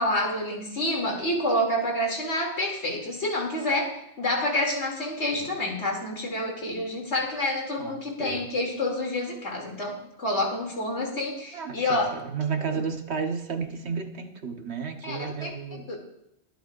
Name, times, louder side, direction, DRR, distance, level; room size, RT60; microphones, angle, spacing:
voice 1, 0.0-12.1 12.7-12.8 15.0-15.5 15.9-16.0, left 1 dB, 85° left, -1 dB, 3.0 m, -28 dB
voice 2, 7.8-8.5 11.5-15.9, right 5 dB, 70° right, 5 dB, 1.4 m, -33 dB
23.5 x 9.2 x 2.5 m, 0.79 s
omnidirectional pair, 1.1 m